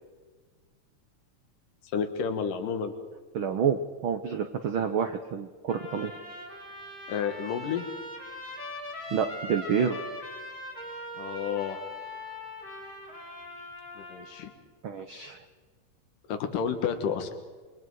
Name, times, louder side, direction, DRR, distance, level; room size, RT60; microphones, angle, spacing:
voice 1, 1.9-2.9 7.1-7.9 11.2-11.8 14.0-14.5 16.3-17.3, left 7 dB, 85° left, 7 dB, 3.1 m, -30 dB
voice 2, 3.3-6.1 9.1-10.0 14.8-15.4, right 7 dB, 75° right, 8 dB, 1.2 m, -28 dB
Trumpet, 5.7-14.5, left 1 dB, 25° left, 5.1 m, -41 dB
27.5 x 24.0 x 4.8 m, 1.4 s
omnidirectional pair, 3.7 m